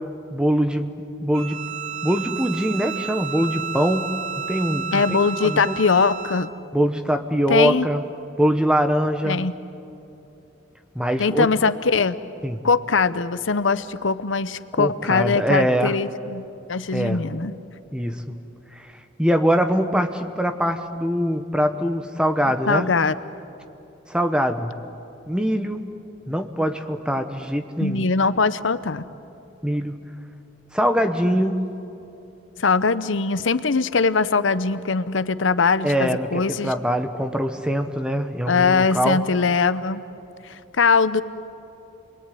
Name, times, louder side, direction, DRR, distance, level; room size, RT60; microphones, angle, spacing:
voice 1, 0.3-1.6 2.0-5.7 6.7-8.0 8.4-9.4 10.9-11.5 12.4-12.6 14.8-15.9 16.9-17.2 17.9-18.3 18.8-18.9 19.2-22.9 24.1-24.7 25.3-25.9 26.3-28.1 29.6-30.0 30.7-31.7 35.8-39.2, equal, 5° right, 7 dB, 1.2 m, -23 dB
Bowed string instrument, 1.3-6.6, right 7 dB, 85° right, 1.1 m, -32 dB
voice 2, 4.9-6.5 7.5-7.9 9.2-9.5 11.2-12.2 12.6-17.6 22.4-23.1 27.8-29.1 32.6-36.7 38.5-40.0 40.4-41.2, left 4 dB, 85° left, 14 dB, 0.8 m, -21 dB
28.5 x 22.0 x 9.4 m, 2.9 s
head